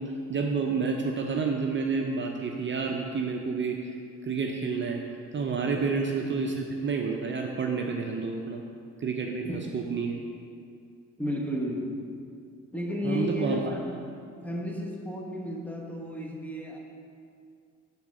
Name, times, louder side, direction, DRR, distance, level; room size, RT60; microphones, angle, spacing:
voice 1, 0.0-3.9 4.2-5.0 5.3-8.6 9.0-9.5 9.7-10.2 13.0-13.6, right 5 dB, 40° right, 1 dB, 0.6 m, -29 dB
voice 2, 11.2-12.0 12.7-14.1 14.4-16.8, left 1 dB, 5° left, -1 dB, 1.1 m, -33 dB
7.2 x 3.6 x 6.3 m, 2.3 s
cardioid pair, 90°, 30 cm